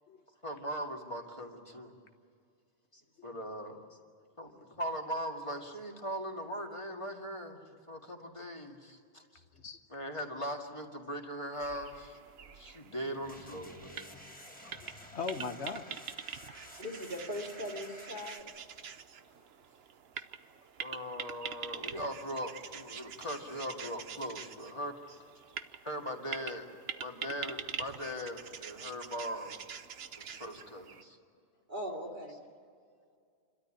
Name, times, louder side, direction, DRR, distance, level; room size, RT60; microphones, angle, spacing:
voice 1, 0.4-1.9 2.9-3.8 4.4-7.6 7.9-9.2 9.9-12.2 12.5-14.2 14.6-14.7 18.8-19.0 20.8-25.2 25.8-26.7 27.0-29.7 30.2-31.2, equal, 25° left, 1 dB, 2.2 m, -40 dB
sound 1, 11.5-31.0, right 7 dB, 65° right, 1.0 m, -45 dB
sound 2, 13.2-18.4, left 1 dB, 5° left, 2.1 m, -51 dB
voice 2, 14.7-16.0 19.3-19.4, left 4 dB, 75° left, 8 dB, 1.4 m, -40 dB
voice 3, 16.8-18.4 31.7-32.4, equal, 45° right, 0 dB, 2.9 m, -39 dB
28.0 x 13.0 x 10.0 m, 2.3 s
omnidirectional pair, 1.1 m